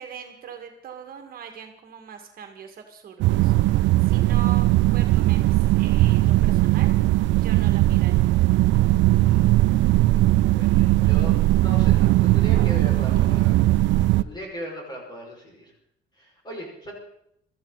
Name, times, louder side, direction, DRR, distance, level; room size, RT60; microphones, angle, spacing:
voice 1, 0.0-3.5 4.0-4.7 4.9-6.9 7.3-8.1 13.1-13.2, right 8 dB, 50° right, 4 dB, 2.0 m, -41 dB
sound 1, 3.2-14.2, right 17 dB, 85° right, 0.5 m, -19 dB
voice 2, 9.2-9.5 10.5-13.6 14.2-15.7 16.2-16.9, equal, 25° left, -1 dB, 5.6 m, -38 dB
23.0 x 14.0 x 4.1 m, 0.75 s
cardioid pair, 155°, 19 cm